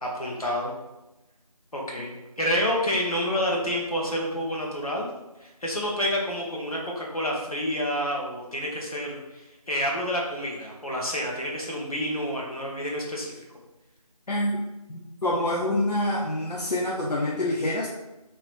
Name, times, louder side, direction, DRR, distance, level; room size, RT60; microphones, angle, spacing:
voice 1, 0.0-0.7 1.7-5.1 5.4-13.3, equal, 65° left, -2 dB, 1.2 m, -29 dB
voice 2, 14.3-14.6 14.9-17.9, left 1 dB, 85° left, -2 dB, 0.7 m, -26 dB
3.1 x 3.1 x 4.6 m, 1.0 s
figure-of-eight pair, 175°, 20 cm